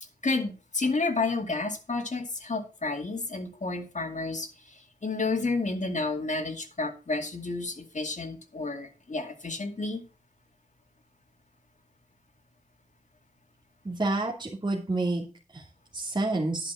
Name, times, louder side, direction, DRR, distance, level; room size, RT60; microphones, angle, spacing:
voice 1, 0.2-10.0, left 3 dB, 55° left, 4 dB, 2.3 m, -31 dB
voice 2, 13.8-16.7, right 2 dB, 30° right, -5 dB, 2.8 m, -29 dB
10.5 x 6.0 x 6.3 m, 0.34 s
wide cardioid pair, 65°, 15 cm